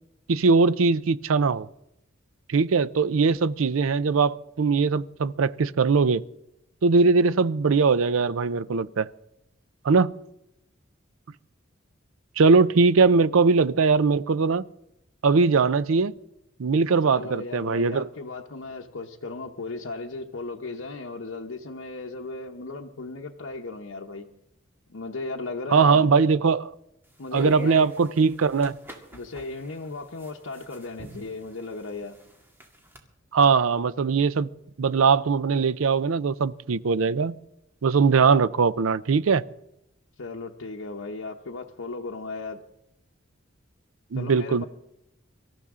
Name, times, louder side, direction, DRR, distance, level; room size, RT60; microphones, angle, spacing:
voice 1, 0.3-1.7 2.5-6.2 6.8-9.1 9.8-10.1 12.4-14.6 15.2-16.1 16.6-18.1 25.7-26.7 27.3-28.7 33.3-34.5 34.8-37.4 37.8-39.4 44.1-44.6, right 4 dB, 90° right, 0.5 m, -21 dB
voice 2, 17.0-24.3 24.9-26.1 27.2-27.9 29.1-32.2 40.2-42.6 44.1-44.7, left 3 dB, 85° left, 0.9 m, -36 dB
sound 1, 27.0-33.0, left 1 dB, 10° right, 2.1 m, -45 dB
24.5 x 13.5 x 3.7 m
head